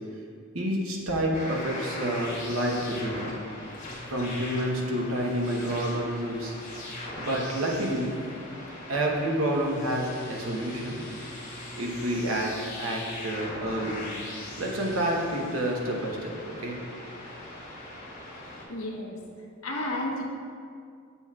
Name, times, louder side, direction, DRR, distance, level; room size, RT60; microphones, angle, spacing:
voice 1, 0.5-3.4 4.1-6.5 7.2-8.1 8.9-11.0 11.8-12.5 12.8-14.1 14.6-16.3 16.6-16.8, right 1 dB, 85° right, -1 dB, 1.0 m, -29 dB
sound 1, 1.3-18.6, left 1 dB, 40° left, 1.6 m, -40 dB
voice 2, 18.7-19.2 19.6-20.2, left 1 dB, 75° left, -2 dB, 1.0 m, -31 dB
7.1 x 6.9 x 2.4 m, 2.3 s
head